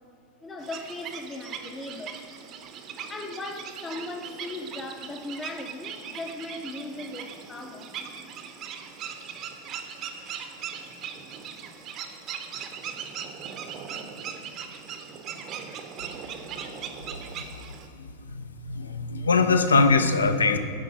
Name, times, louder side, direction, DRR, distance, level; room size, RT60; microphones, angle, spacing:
voice 1, 0.4-2.2 3.1-7.9, left 2 dB, 15° left, 5 dB, 0.5 m, -38 dB
sound 1, 0.6-17.9, right 7 dB, 35° right, 0.6 m, -39 dB
voice 2, 18.3-20.6, left 4 dB, 70° left, 9 dB, 0.5 m, -22 dB
9.1 x 3.7 x 4.9 m, 2.6 s
figure-of-eight pair, 90°, 0 cm